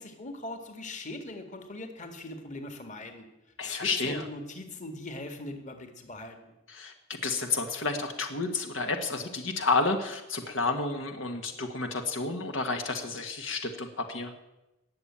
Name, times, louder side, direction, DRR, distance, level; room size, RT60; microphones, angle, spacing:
voice 1, 0.0-3.3 3.6-6.5, left 2 dB, 40° left, 6 dB, 1.9 m, -40 dB
voice 2, 3.6-4.3 6.7-14.3, left 3 dB, 80° left, 5 dB, 1.7 m, -31 dB
19.5 x 7.2 x 8.8 m, 0.96 s
head